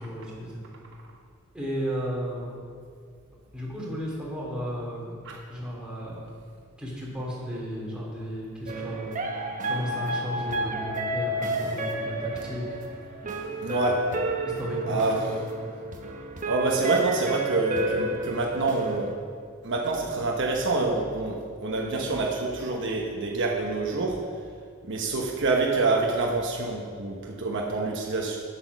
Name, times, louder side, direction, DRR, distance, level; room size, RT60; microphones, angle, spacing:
voice 1, 0.0-0.6 1.5-2.6 3.5-5.1 5.5-6.2 6.8-13.0 14.4-15.6, equal, 5° right, -5 dB, 2.6 m, -34 dB
sound 1, 8.7-19.1, right 1 dB, 35° right, 1.0 m, -31 dB
voice 2, 13.6-14.0 14.9-15.2 16.5-19.1 19.6-24.2 24.9-28.4, right 3 dB, 60° right, -1 dB, 1.1 m, -27 dB
8.6 x 8.2 x 6.1 m, 2.1 s
head